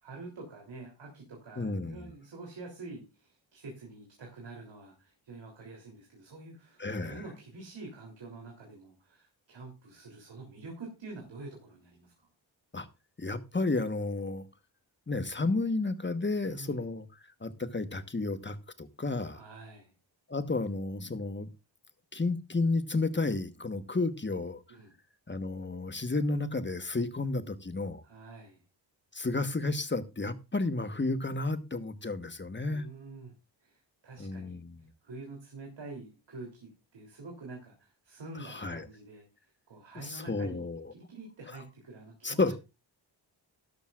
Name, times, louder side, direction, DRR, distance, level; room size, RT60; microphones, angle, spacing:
voice 1, 0.0-12.3 16.4-16.8 19.3-19.9 24.7-24.9 28.0-28.6 32.6-33.3 33.6-34.6 35.0-40.7 40.9-42.5, right 3 dB, 70° right, 1 dB, 3.4 m, -47 dB
voice 2, 1.6-2.1 6.8-7.2 12.7-12.9 13.2-14.4 15.1-17.1 17.4-19.4 20.3-21.5 22.1-24.6 25.3-28.0 29.1-32.9 34.2-34.8 38.4-38.9 40.0-40.9 42.2-42.5, left 3 dB, 25° left, 10 dB, 1.3 m, -32 dB
12.0 x 12.0 x 2.5 m, 0.27 s
cardioid pair, 65°, 46 cm